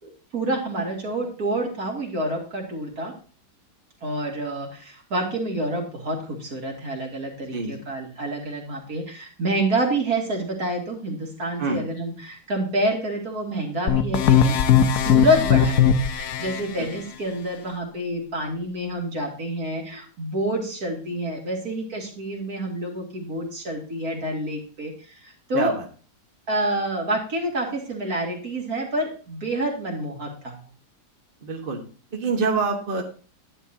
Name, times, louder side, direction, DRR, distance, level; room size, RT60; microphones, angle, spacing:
voice 1, 0.0-3.1 4.0-25.7 26.5-30.5, right 1 dB, 60° right, 0 dB, 3.0 m, -28 dB
sound 1, 13.9-16.6, left 8 dB, 70° left, 1.3 m, -18 dB
voice 2, 25.5-25.9 31.4-31.8 32.1-33.0, right 4 dB, 35° right, 1 dB, 1.5 m, -25 dB
12.0 x 10.0 x 2.8 m, 0.37 s
omnidirectional pair, 1.8 m